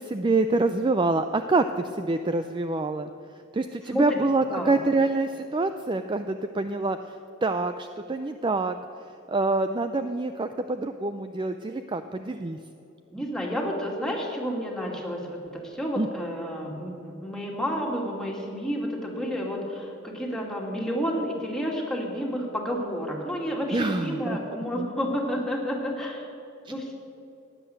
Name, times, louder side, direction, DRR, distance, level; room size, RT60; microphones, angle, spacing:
voice 1, 0.0-3.1 3.5-7.1 7.4-8.8 9.3-12.6 16.0-16.1 23.7-24.4 24.8-24.9 26.7-26.8, right 3 dB, 20° right, 9 dB, 0.4 m, -26 dB
voice 2, 3.9-4.2 4.5-4.7 13.1-26.3 26.7-26.9, equal, 5° left, -1 dB, 2.4 m, -30 dB
16.0 x 10.0 x 7.8 m, 2.8 s
head